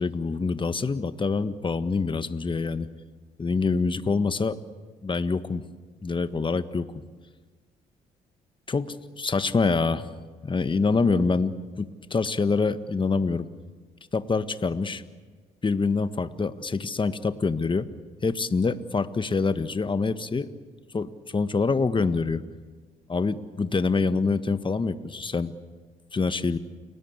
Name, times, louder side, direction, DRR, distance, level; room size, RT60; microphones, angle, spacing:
voice 1, 0.0-2.9 3.4-4.6 5.0-5.6 6.0-6.9 8.7-10.1 10.4-13.5 14.1-15.0 15.6-17.9 18.2-20.5 20.9-22.4 23.1-25.5 26.1-26.6, left 4 dB, 30° left, 11 dB, 1.6 m, -25 dB
29.5 x 20.0 x 8.3 m, 1.4 s
hypercardioid pair, 55°, 16 cm